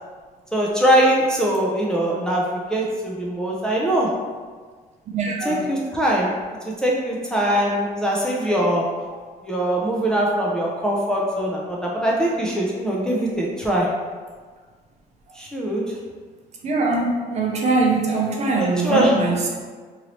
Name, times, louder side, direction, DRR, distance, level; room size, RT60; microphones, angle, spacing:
voice 1, 0.5-2.4 2.7-4.1 5.5-6.3 6.8-8.8 9.4-13.9 15.4-15.8 18.6-19.1, right 1 dB, 5° left, -4 dB, 0.5 m, -22 dB
voice 2, 5.1-5.7 9.1-9.2 16.6-19.5, right 3 dB, 40° right, -1 dB, 0.6 m, -22 dB
2.9 x 2.6 x 3.0 m, 1.5 s
cardioid pair, 110°, 17 cm